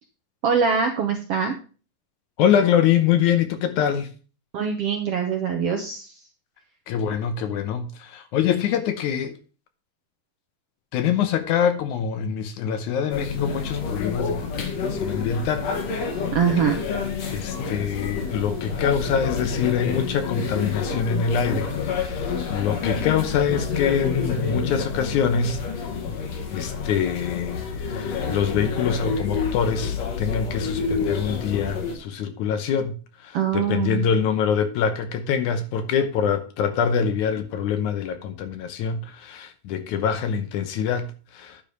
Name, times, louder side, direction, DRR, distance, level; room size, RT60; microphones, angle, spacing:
voice 1, 0.4-1.5 4.5-6.2 16.3-16.8 33.3-34.1, right 6 dB, 70° right, 1.4 m, -23 dB
voice 2, 2.4-4.1 6.9-9.3 10.9-15.7 17.3-25.6 26.5-41.6, left 7 dB, 75° left, 2.1 m, -24 dB
sound 1, 13.1-32.0, left 5 dB, 60° left, 2.4 m, -28 dB
10.0 x 4.7 x 5.3 m
omnidirectional pair, 3.8 m